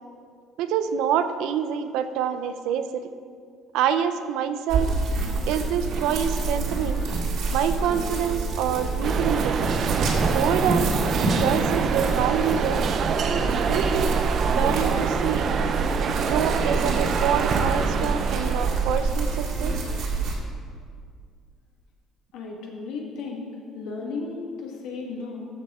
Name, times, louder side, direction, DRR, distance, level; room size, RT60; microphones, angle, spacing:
voice 1, 0.6-3.1 3.7-4.9 5.4-7.0 7.5-9.6 10.3-12.9 13.5-14.1 14.4-15.5 16.2-19.8, right 8 dB, 80° right, 10 dB, 0.6 m, -26 dB
sound 1, 4.7-20.3, right 3 dB, 55° right, 2.0 m, -27 dB
sound 2, 5.2-20.0, right 1 dB, 20° right, 1.7 m, -43 dB
sound 3, 9.0-19.1, right 6 dB, 40° right, 0.5 m, -26 dB
voice 2, 22.3-25.4, left 4 dB, 75° left, 0 dB, 1.8 m, -34 dB
14.0 x 6.4 x 4.9 m, 2.2 s
cardioid pair, 170°, 0 cm